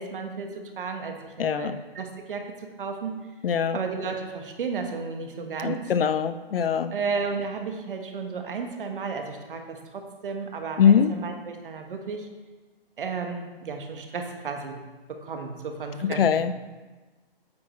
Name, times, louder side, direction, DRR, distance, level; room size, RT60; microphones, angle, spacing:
voice 1, 0.0-3.1 3.7-5.9 6.9-12.3 13.0-14.8 15.1-16.5, right 5 dB, 60° right, 4 dB, 1.4 m, -33 dB
voice 2, 1.4-1.7 3.4-3.8 5.6-6.9 10.8-11.1 16.0-16.5, left 7 dB, 70° left, 13 dB, 0.6 m, -22 dB
8.7 x 8.5 x 3.2 m, 1.2 s
hypercardioid pair, 160°, 30 cm